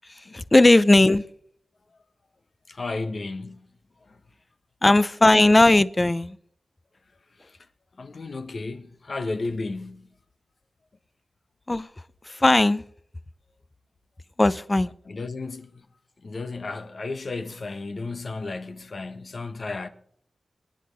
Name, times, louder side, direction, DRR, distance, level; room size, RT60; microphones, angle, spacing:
voice 1, 0.3-1.2 4.8-6.4 11.7-11.9 12.3-12.8 14.4-14.9, left 2 dB, 25° left, 0.6 m, -17 dB
voice 2, 2.7-3.6 4.1-4.2 8.0-10.1 15.1-15.8 16.2-19.9, left 3 dB, 55° left, 1.3 m, -33 dB
22.5 x 10.5 x 3.5 m
wide cardioid pair, 80°, 0 cm